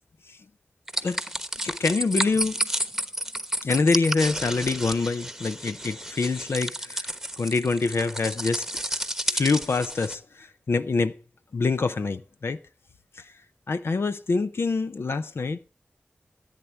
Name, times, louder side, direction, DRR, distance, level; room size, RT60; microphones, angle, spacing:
sound 1, 0.9-10.1, right 1 dB, 5° right, 1.1 m, -31 dB
voice 1, 1.6-2.7 3.6-7.1 7.4-11.2 11.5-12.6 13.1-13.4 13.7-15.6, left 4 dB, 70° left, 0.6 m, -26 dB
14.5 x 8.2 x 4.5 m
cardioid pair, 45°, 4 cm